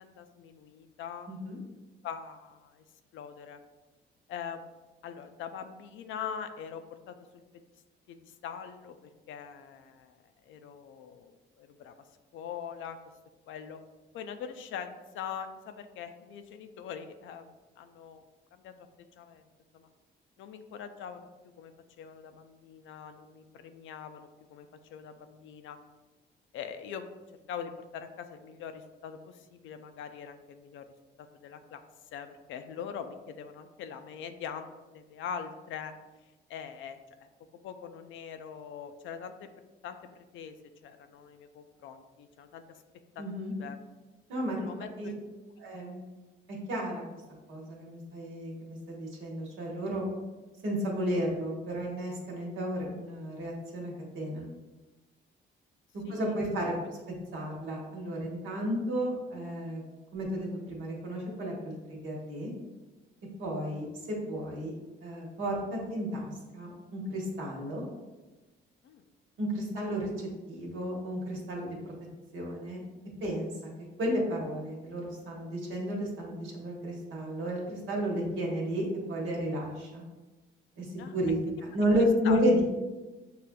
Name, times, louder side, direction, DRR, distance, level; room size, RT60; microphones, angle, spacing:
voice 1, 0.0-1.3 2.0-2.8 3.1-3.6 4.3-4.6 5.0-7.4 8.1-9.0 9.3-10.2 10.5-12.0 12.3-13.0 13.5-13.8 14.1-18.2 18.5-19.4 19.7-19.9 20.4-21.3 21.6-21.7 22.0-25.8 26.5-27.1 27.5-30.9 31.2-31.8 32.1-35.9 36.5-37.3 37.6-39.5 39.8-40.5 40.8-42.8 43.2-43.8 44.6-45.5 56.0-56.4 56.8-56.9 68.8-69.0 81.0-81.3 81.9-82.4, left 7 dB, 75° left, 9 dB, 0.4 m, -43 dB
voice 2, 1.3-1.6 43.2-43.5 44.3-44.6 45.0-45.1 45.6-46.0 46.7-47.0 47.5-50.1 50.6-54.5 55.9-56.7 57.3-59.8 60.1-62.5 63.4-64.7 65.0-67.8 69.4-71.9 72.3-72.8 73.2-73.5 74.0-80.0 80.8-80.9 81.1-81.4 81.7-82.6, equal, 80° right, -3 dB, 1.3 m, -32 dB
6.5 x 2.5 x 2.2 m, 1.2 s
cardioid pair, 90°, 20 cm